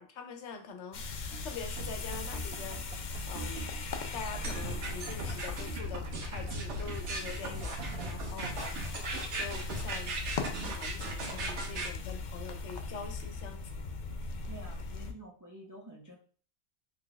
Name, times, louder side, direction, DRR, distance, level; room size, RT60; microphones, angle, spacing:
voice 1, 0.0-3.7 4.1-8.6 9.3-10.2 10.8-13.7, left 5 dB, 85° left, 6 dB, 0.9 m, -44 dB
sound 1, 0.9-15.1, left 3 dB, 55° left, 0.5 m, -39 dB
sound 2, 1.3-9.0, right 4 dB, 65° right, 0.7 m, -46 dB
sound 3, 4.4-11.9, right 2 dB, 85° right, 1.1 m, -38 dB
voice 2, 14.5-16.2, right 2 dB, 25° right, -1 dB, 0.4 m, -49 dB
3.3 x 2.2 x 3.8 m, 0.43 s
omnidirectional pair, 1.2 m